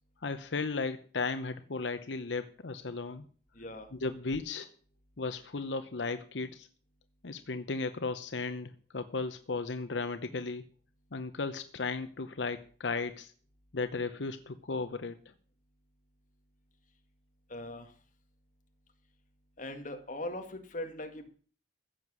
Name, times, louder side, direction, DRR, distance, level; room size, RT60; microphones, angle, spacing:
voice 1, 0.2-3.3 3.9-4.7 5.2-6.7 7.2-10.6 11.1-13.3 13.7-15.1, left 4 dB, 85° left, 10 dB, 0.8 m, -35 dB
voice 2, 3.6-3.9 17.5-17.9 19.6-21.3, left 1 dB, 45° left, 5 dB, 1.9 m, -40 dB
15.0 x 7.7 x 6.3 m, 0.42 s
head